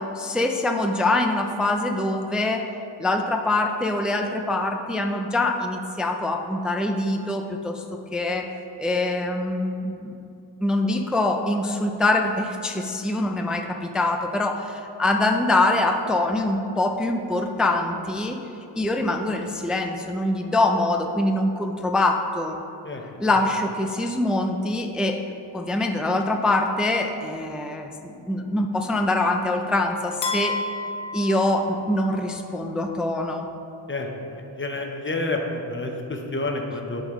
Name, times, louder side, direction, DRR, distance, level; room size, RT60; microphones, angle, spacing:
voice 1, 0.0-2.6 3.0-7.8 8.1-8.5 8.8-10.2 10.6-18.4 18.7-22.6 23.2-25.2 25.5-30.6 31.1-33.5, left 2 dB, ahead, 3 dB, 0.3 m, -24 dB
sound 1, 30.2-32.3, left 2 dB, 70° left, 0.7 m, -31 dB
voice 2, 33.9-37.0, left 2 dB, 25° left, 2 dB, 0.8 m, -29 dB
11.0 x 3.9 x 3.0 m, 2.7 s
wide cardioid pair, 75°, 45 cm